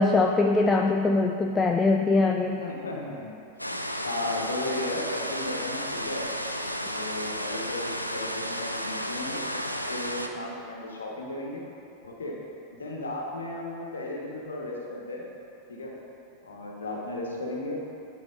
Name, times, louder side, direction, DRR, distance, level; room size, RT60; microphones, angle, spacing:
voice 1, 0.0-2.6, left 3 dB, 15° left, 3 dB, 0.3 m, -22 dB
voice 2, 2.6-3.3 4.0-6.2 6.9-9.4 9.9-11.6 12.0-12.4 12.7-15.2 15.7-15.9 16.4-17.8, left 2 dB, 70° left, -2 dB, 1.2 m, -35 dB
sound 1, 3.6-10.3, equal, 90° left, 0.4 m, -33 dB
11.0 x 4.2 x 3.7 m, 2.8 s
figure-of-eight pair, 90°, 0 cm